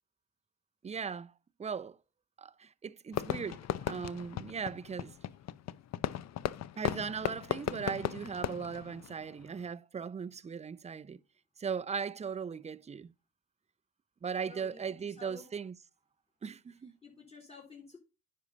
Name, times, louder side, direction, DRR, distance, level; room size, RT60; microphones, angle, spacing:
voice 1, 0.8-1.3 1.6-2.0 2.4-5.1 6.8-11.2 11.6-13.1 14.2-15.8 16.4-17.0, right 6 dB, 20° right, 0.5 m, -38 dB
Fireworks, 3.1-9.7, left 11 dB, 60° left, 0.6 m, -37 dB
voice 2, 14.4-14.8 15.2-15.4 17.0-18.0, left 3 dB, 20° left, 3.3 m, -51 dB
9.7 x 5.6 x 4.0 m
cardioid pair, 90°, 30 cm